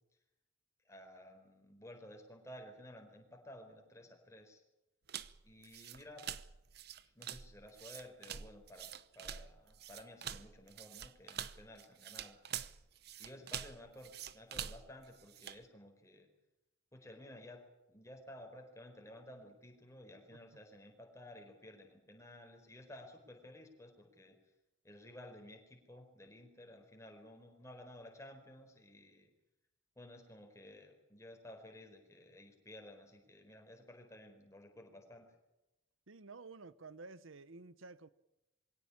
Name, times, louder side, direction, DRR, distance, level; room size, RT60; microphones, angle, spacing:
voice 1, 0.8-4.6 5.4-6.3 7.0-8.9 9.1-12.4 13.2-16.3 16.9-17.6 17.9-24.4 24.8-29.3 30.0-35.3, left 1 dB, 15° left, 4.7 m, -54 dB
sound 1, 5.1-15.6, right 9 dB, 50° right, 0.9 m, -46 dB
voice 2, 36.1-38.1, right 3 dB, 75° right, 1.0 m, -52 dB
23.0 x 17.0 x 8.6 m
head